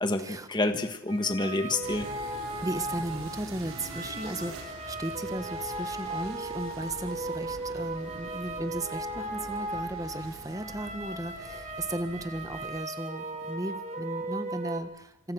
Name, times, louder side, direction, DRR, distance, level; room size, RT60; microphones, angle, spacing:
voice 1, 0.0-2.1, left 2 dB, 20° left, 7 dB, 1.4 m, -28 dB
sound 1, 1.1-14.8, right 2 dB, 35° right, 2.9 m, -37 dB
sound 2, 1.8-12.6, right 2 dB, 80° right, 4.6 m, -45 dB
voice 2, 2.6-15.3, right 1 dB, 15° right, 9 dB, 1.5 m, -36 dB
26.5 x 26.5 x 6.3 m, 0.88 s
head